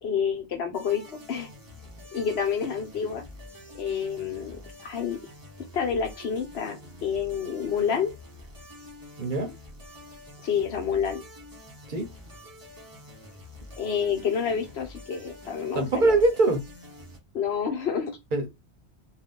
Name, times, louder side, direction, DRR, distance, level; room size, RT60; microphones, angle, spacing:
voice 1, 0.0-1.5 2.1-3.2 3.8-5.2 5.7-8.1 10.4-11.2 13.8-16.2 17.3-18.1, left 7 dB, 70° left, 1.1 m, -28 dB
sound 1, 0.7-17.2, left 1 dB, 25° right, 0.6 m, -47 dB
voice 2, 9.2-9.5 11.9-12.1 15.7-16.7 18.3-18.5, right 2 dB, 50° right, 0.9 m, -23 dB
2.7 x 2.3 x 3.6 m
omnidirectional pair, 1.1 m